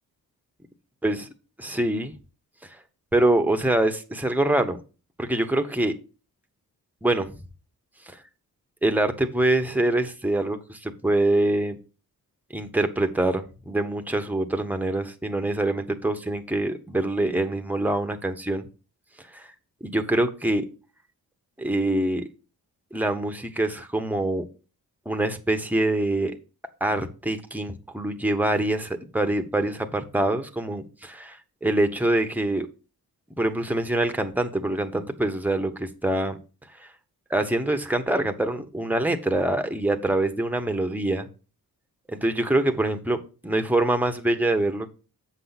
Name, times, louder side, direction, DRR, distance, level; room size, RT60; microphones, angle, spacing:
voice 1, 1.6-2.1 2.6-2.8 3.1-4.8 5.2-5.9 7.0-7.3 8.1-8.2 8.8-11.8 12.5-18.7 19.3-19.5 19.8-20.7 21.6-22.3 22.9-24.4 25.0-26.4 26.8-32.7 33.4-36.4 36.8-36.9 37.3-41.3 42.1-44.9, right 1 dB, 5° right, 1.0 m, -25 dB
7.6 x 5.8 x 4.0 m
cardioid pair, 70°, 37 cm